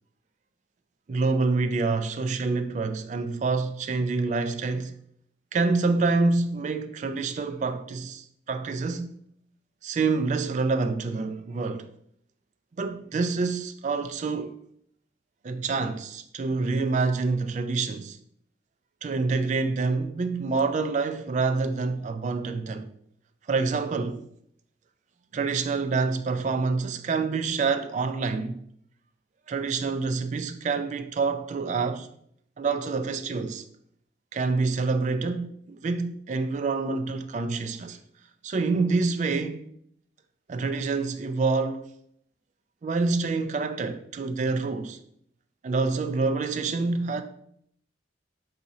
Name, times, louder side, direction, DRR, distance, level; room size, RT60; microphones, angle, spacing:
voice 1, 1.1-4.9 5.5-9.1 9.8-11.9 12.8-14.6 15.4-18.2 19.0-22.9 23.5-24.2 25.3-28.6 29.5-32.1 32.6-33.6 34.3-38.0 38.4-39.6 40.5-41.8 42.8-45.0 45.6-47.2, right 4 dB, 40° right, 0.3 m, -27 dB
4.7 x 2.7 x 4.1 m
head